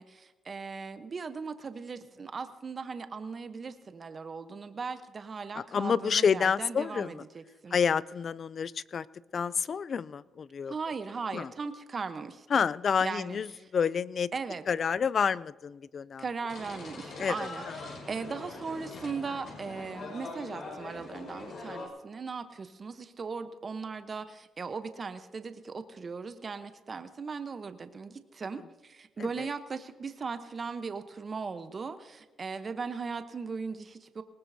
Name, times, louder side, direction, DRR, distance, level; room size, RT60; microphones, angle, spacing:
voice 1, 0.0-7.8 10.7-12.7 13.0-13.4 14.3-14.6 16.2-17.6 18.1-34.2, right 5 dB, 40° right, 10 dB, 0.9 m, -38 dB
voice 2, 5.5-7.2 7.7-9.1 9.3-10.7 11.3-11.5 12.5-14.3 14.7-16.2 17.2-18.0 28.5-28.6 29.2-29.5, left 6 dB, 50° left, 20 dB, 0.4 m, -29 dB
sound 1, 16.5-21.9, left 3 dB, 65° left, 5.7 m, -42 dB
20.0 x 18.5 x 2.7 m, 1.1 s
cardioid pair, 90°, 0 cm